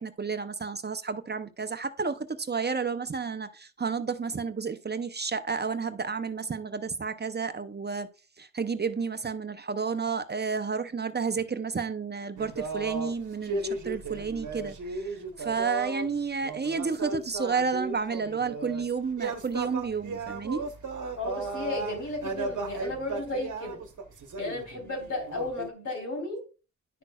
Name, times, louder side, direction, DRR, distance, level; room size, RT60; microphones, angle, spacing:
voice 1, 0.0-8.1 8.4-20.6, right 5 dB, 35° right, 0.6 m, -31 dB
sound 1, 12.4-16.1 16.4-18.8 19.1-25.7, right 3 dB, 85° right, 1.1 m, -35 dB
voice 2, 21.2-23.8 24.4-26.4, left 2 dB, 80° left, 3.5 m, -34 dB
10.0 x 6.1 x 2.3 m
wide cardioid pair, 75°, 30 cm